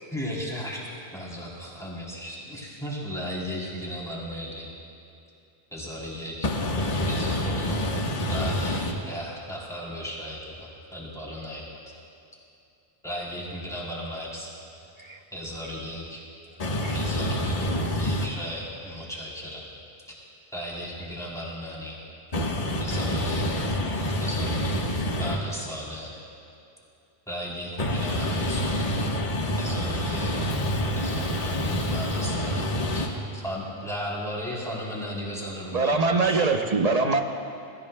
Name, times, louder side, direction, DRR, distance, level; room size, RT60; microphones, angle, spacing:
voice 1, 0.1-0.8 1.1-4.7 5.7-6.4 7.1-7.9 8.3-11.6 13.0-14.5 15.3-16.2 16.9-19.6 20.1-20.2 20.5-22.0 22.8-23.5 24.2-24.9 25.1-26.1 27.3-28.9 29.6-30.4 30.9-32.6 32.9-33.0 33.4-36.4, equal, 5° left, -6 dB, 3.3 m, -35 dB
voice 2, 6.4-8.9 16.6-18.3 22.3-25.4 27.8-33.1, left 1 dB, 35° left, -1 dB, 1.3 m, -27 dB
voice 3, 35.7-37.2, right 3 dB, 40° right, 4 dB, 0.8 m, -23 dB
24.5 x 14.5 x 2.2 m, 2.7 s
omnidirectional pair, 1.1 m